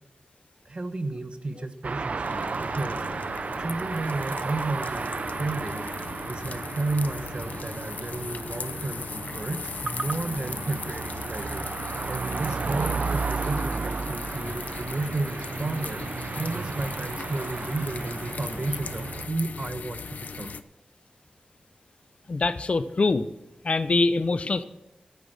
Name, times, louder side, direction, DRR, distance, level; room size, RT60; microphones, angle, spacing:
voice 1, 0.6-3.0 3.6-5.9 6.3-11.7 12.1-16.0 16.3-20.5, right 2 dB, 45° right, 9 dB, 1.1 m, -32 dB
sound 1, 1.8-19.3, right 4 dB, 60° right, 0.5 m, -33 dB
sound 2, 2.2-20.6, left 5 dB, 90° left, 0.6 m, -38 dB
voice 2, 22.3-23.3 23.6-24.6, left 3 dB, 50° left, 13 dB, 0.7 m, -24 dB
13.0 x 9.3 x 6.4 m, 0.93 s
wide cardioid pair, 95°, 3 cm